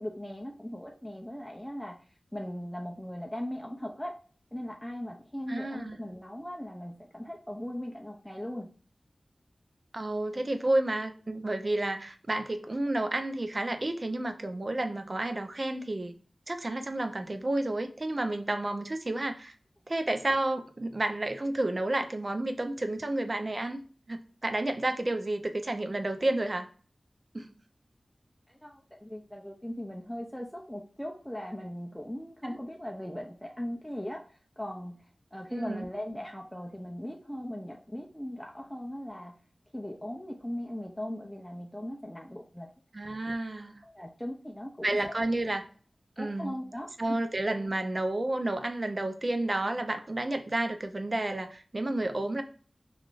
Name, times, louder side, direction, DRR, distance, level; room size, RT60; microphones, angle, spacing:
voice 1, 0.0-2.0 2.3-4.2 4.5-8.7 28.5-39.4 39.7-42.7 43.8-45.1 46.2-47.2, equal, 5° left, 0 dB, 0.5 m, -39 dB
voice 2, 5.5-6.0 9.9-16.2 16.5-19.5 19.9-23.8 24.1-26.7 27.3-27.5 32.4-32.6 35.5-35.9 42.9-43.8 44.8-45.6 46.2-46.6 47.0-52.4, right 2 dB, 45° right, 7 dB, 0.5 m, -31 dB
3.4 x 2.4 x 2.5 m, 0.41 s
wide cardioid pair, 55°, 0 cm